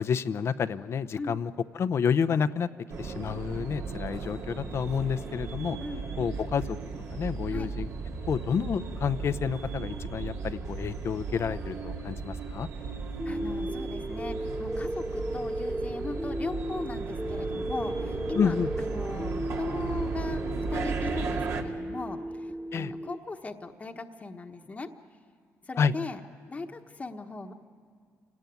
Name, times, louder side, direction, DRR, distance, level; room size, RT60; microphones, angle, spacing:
voice 1, 0.0-2.7 3.0-5.8 6.2-6.8 7.1-7.9 8.3-12.7 18.3-18.7 22.7-22.9 25.8-25.9, left 6 dB, 55° left, 13 dB, 0.8 m, -29 dB
sound 1, 2.9-21.6, right 4 dB, 65° right, 2.2 m, -36 dB
voice 2, 13.2-20.4 20.7-24.9 25.7-26.2 26.5-27.5, left 3 dB, 25° left, 4 dB, 1.2 m, -39 dB
sound 2, 13.2-23.2, right 1 dB, 5° right, 0.7 m, -35 dB
27.0 x 18.0 x 9.4 m, 2.3 s
cardioid pair, 90°, 5 cm